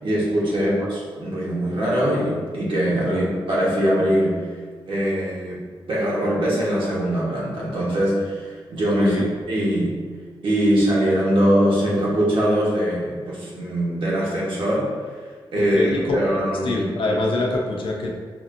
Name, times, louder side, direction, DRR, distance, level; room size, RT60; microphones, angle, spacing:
voice 1, 0.0-4.5 4.9-9.2 9.5-10.0 10.4-14.9 15.2-16.9, equal, 70° right, -6 dB, 1.2 m, -22 dB
voice 2, 9.0-9.3 15.7-16.2 16.6-18.2, left 2 dB, 70° left, -1 dB, 0.6 m, -24 dB
5.1 x 2.7 x 2.5 m, 1.5 s
wide cardioid pair, 140°, 9 cm